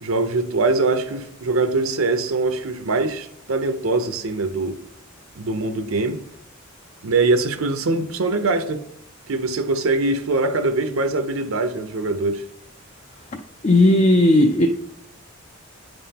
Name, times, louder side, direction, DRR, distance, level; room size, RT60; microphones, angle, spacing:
voice 1, 0.0-4.8 5.4-6.2 7.0-8.8 9.3-12.4, right 3 dB, 70° right, 0.6 m, -22 dB
voice 2, 13.6-14.7, left 1 dB, 30° left, 0.4 m, -15 dB
9.2 x 5.4 x 2.8 m
head